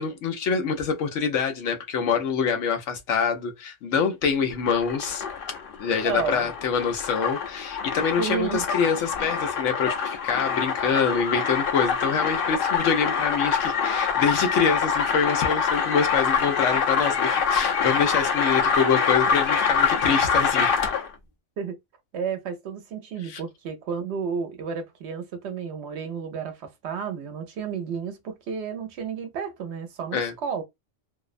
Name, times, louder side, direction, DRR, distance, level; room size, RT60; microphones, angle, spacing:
voice 1, 0.0-5.2 5.8-20.7 23.3-23.4 30.1-30.3, left 6 dB, 85° left, 1.0 m, -25 dB
sound 1, 4.5-21.1, left 6 dB, 60° left, 0.6 m, -25 dB
voice 2, 6.0-6.5 8.2-8.6 21.6-21.8 22.1-30.6, right 6 dB, 70° right, 0.9 m, -32 dB
2.6 x 2.0 x 2.4 m
omnidirectional pair, 1.2 m